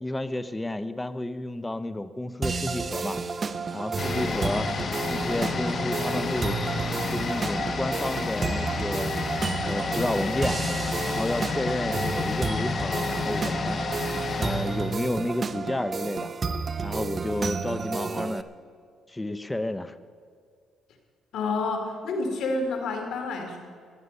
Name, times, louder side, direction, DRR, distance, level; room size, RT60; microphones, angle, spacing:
voice 1, 0.0-3.2 3.7-4.7 5.1-6.6 7.1-9.1 9.6-10.6 11.0-13.8 14.4-16.3 16.8-18.5 19.1-20.0, left 1 dB, 15° left, 12 dB, 0.7 m, -31 dB
sound 1, 2.4-18.4, right 5 dB, 35° right, 0.7 m, -31 dB
sound 2, 4.0-15.7 16.0-16.1, left 4 dB, 45° left, 1.0 m, -31 dB
voice 2, 21.3-23.6, left 3 dB, 75° left, 3 dB, 2.6 m, -29 dB
16.0 x 11.0 x 5.5 m, 2.1 s
cardioid pair, 90°, 0 cm